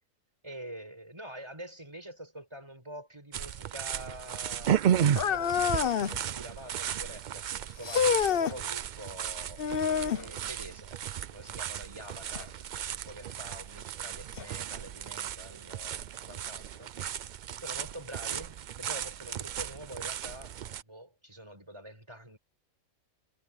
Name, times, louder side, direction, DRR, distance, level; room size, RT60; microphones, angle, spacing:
voice 1, 0.4-4.8 5.3-11.0 11.3-16.9 17.6-22.4, right 1 dB, 20° right, 5.5 m, -46 dB
sound 1, 3.3-20.8, right 9 dB, 70° right, 0.4 m, -34 dB
sound 2, 5.2-6.2 7.8-8.6 9.6-10.3 12.3-12.5 13.3-13.4 14.4-14.5, left 7 dB, 50° left, 0.9 m, -27 dB
omnidirectional pair, 1.4 m